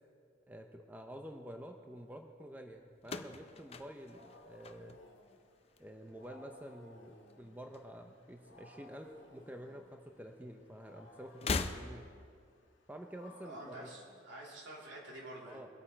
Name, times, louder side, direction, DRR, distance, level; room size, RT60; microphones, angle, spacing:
voice 1, 0.5-5.0 5.8-12.0 12.9-13.9 15.5-15.7, equal, 10° right, 4 dB, 0.6 m, -49 dB
sound 1, 3.0-5.3 5.6-6.2 7.3-8.3 8.6-8.7 9.8-9.9 11.3-12.3, left 4 dB, 30° left, 0.5 m, -40 dB
Wild animals, 3.7-14.9, left 1 dB, 75° left, 1.7 m, -60 dB
voice 2, 13.4-15.6, right 1 dB, 65° right, -3 dB, 3.2 m, -48 dB
22.5 x 8.7 x 4.4 m, 2.2 s
head